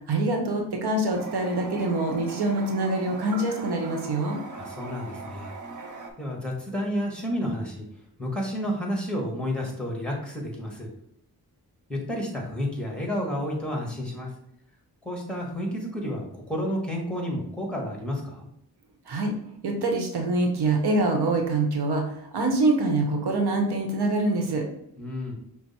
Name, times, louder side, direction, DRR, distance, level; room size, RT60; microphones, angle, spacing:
voice 1, 0.1-4.4 19.1-19.3 19.6-24.6, right 2 dB, 80° right, 2 dB, 0.9 m, -25 dB
Toilet flush, 1.1-6.1, right 3 dB, 50° right, 0.7 m, -40 dB
voice 2, 4.5-5.5 6.2-7.9 8.2-10.9 11.9-14.3 15.0-18.5 25.0-25.4, equal, 5° left, -1 dB, 1.3 m, -31 dB
5.9 x 2.0 x 4.1 m, 0.74 s
cardioid pair, 75°, 39 cm